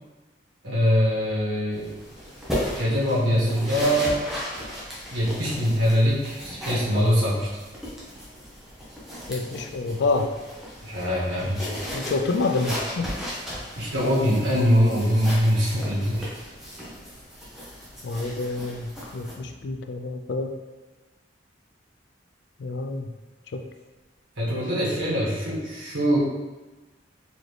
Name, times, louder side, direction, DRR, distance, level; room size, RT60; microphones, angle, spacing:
voice 1, 0.6-1.9 2.8-4.2 5.1-7.5 10.8-11.7 13.7-16.3 24.4-26.2, equal, 90° right, -6 dB, 1.5 m, -23 dB
sound 1, 1.7-19.3, equal, ahead, 0.8 m, -36 dB
voice 2, 9.3-10.3 11.9-13.1 18.0-18.9 19.1-20.5 22.6-23.1 23.5-23.6, left 3 dB, 65° left, 5 dB, 0.4 m, -27 dB
4.1 x 2.9 x 3.2 m, 1.2 s
head